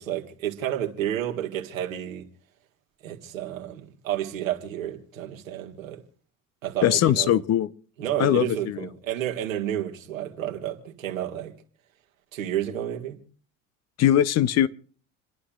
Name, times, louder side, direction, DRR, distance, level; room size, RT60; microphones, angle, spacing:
voice 1, 0.0-2.3 3.0-6.0 6.6-7.4 8.0-11.5 12.3-13.2, right 11 dB, 80° right, 1.8 m, -31 dB
voice 2, 6.8-7.7 8.2-8.9 14.0-14.7, left 11 dB, 40° left, 0.8 m, -21 dB
29.0 x 11.0 x 2.4 m
figure-of-eight pair, 65°, 40 cm